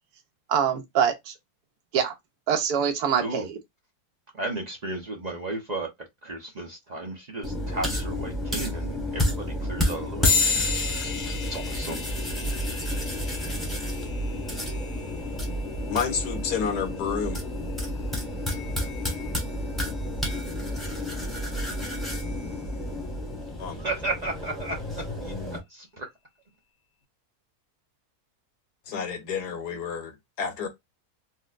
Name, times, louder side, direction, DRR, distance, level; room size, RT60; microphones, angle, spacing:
voice 1, 0.5-1.3 1.9-2.1 2.5-3.6, right 7 dB, 80° right, 1.2 m, -24 dB
voice 2, 4.3-5.9 6.2-10.7 11.5-12.0 23.8-25.3 25.7-26.1, right 2 dB, 45° right, 0.5 m, -34 dB
sound 1, 7.4-25.6, left 1 dB, ahead, 0.9 m, -31 dB
sound 2, 10.2-20.1, left 5 dB, 55° left, 0.9 m, -33 dB
voice 3, 15.9-17.4 23.6-23.8 28.9-30.7, left 6 dB, 80° left, 1.4 m, -30 dB
4.1 x 2.1 x 2.4 m
omnidirectional pair, 1.7 m